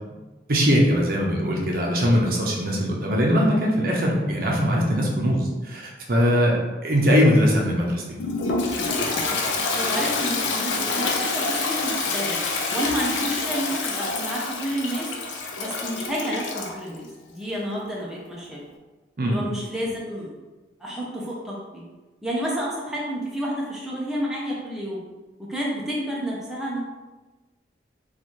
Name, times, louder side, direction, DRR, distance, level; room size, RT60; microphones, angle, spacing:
voice 1, 0.5-8.2 19.2-19.4, equal, 50° right, -2 dB, 0.6 m, -21 dB
Toilet flush, 8.2-16.8, left 3 dB, 85° left, 0.5 m, -27 dB
voice 2, 9.7-12.4 12.7-15.1 15.6-18.6 19.2-20.3 20.8-21.8 22.2-25.0 25.5-26.8, equal, ahead, -6 dB, 0.5 m, -30 dB
3.0 x 2.4 x 4.3 m, 1.2 s
head